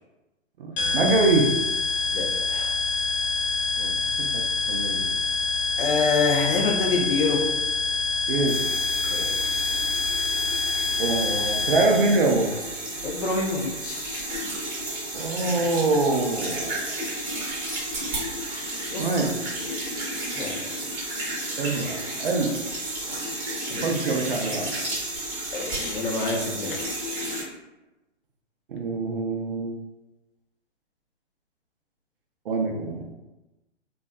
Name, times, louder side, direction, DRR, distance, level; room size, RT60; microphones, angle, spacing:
voice 1, 0.6-1.5 3.8-5.2 8.3-8.6 11.0-12.5 15.1-16.9 19.0-19.4 21.6-22.6 23.8-24.7 28.7-29.7 32.5-33.0, right 3 dB, 50° right, 2 dB, 0.4 m, -25 dB
sound 1, 0.8-12.2, left 4 dB, 75° left, 1.0 m, -26 dB
voice 2, 2.1-2.8 5.8-7.5 9.1-9.8 13.0-14.3 18.9-19.1 20.3-20.7 23.7-23.9 25.5-27.0, left 3 dB, 45° left, 0 dB, 0.5 m, -27 dB
sound 2, 8.5-27.4, right 1 dB, 25° right, 0.8 m, -32 dB
2.6 x 2.2 x 2.3 m, 1.0 s
figure-of-eight pair, 125°, 37 cm